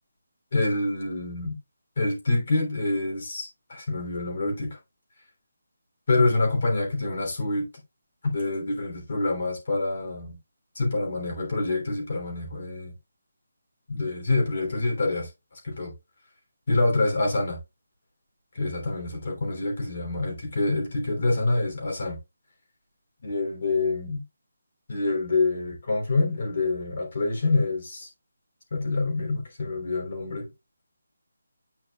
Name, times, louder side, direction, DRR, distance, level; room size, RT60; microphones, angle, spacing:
voice 1, 0.5-1.5 2.0-4.8 6.1-7.7 8.3-10.4 10.7-12.9 13.9-15.3 15.6-15.9 16.7-17.6 18.5-22.2 23.2-24.2 24.9-28.1 28.7-30.5, left 2 dB, 45° left, 3.3 m, -26 dB
9.6 x 5.1 x 2.4 m
hypercardioid pair, 170°, 0 cm